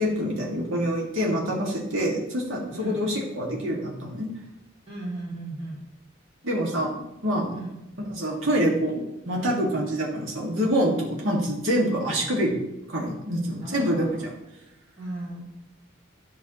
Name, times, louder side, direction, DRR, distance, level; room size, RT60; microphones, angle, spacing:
voice 1, 0.0-4.3 6.4-7.6 8.0-12.5 12.9-14.3, equal, 75° right, -3 dB, 2.0 m, -26 dB
voice 2, 4.9-5.8 7.5-7.8 13.6-14.4 15.0-15.4, right 2 dB, 30° right, -6 dB, 2.5 m, -36 dB
11.0 x 5.9 x 3.0 m, 0.94 s
head